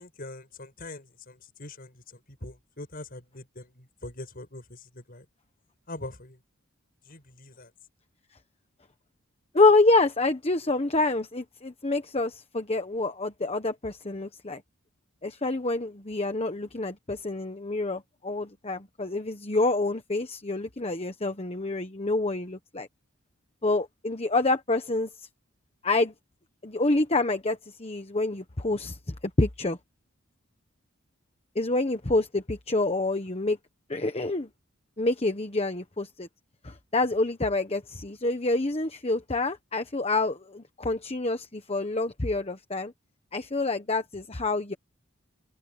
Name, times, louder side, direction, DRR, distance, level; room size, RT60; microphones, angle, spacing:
voice 1, 0.0-5.2 5.9-6.4 7.1-7.7, left 2 dB, 45° left, 6.5 m, -43 dB
voice 2, 9.5-14.6 15.2-22.9 23.6-25.3 25.8-26.1 26.6-29.8 31.5-33.6 33.9-34.5 35.0-36.3 36.6-42.9 43.3-44.7, left 2 dB, 30° left, 1.2 m, -27 dB
head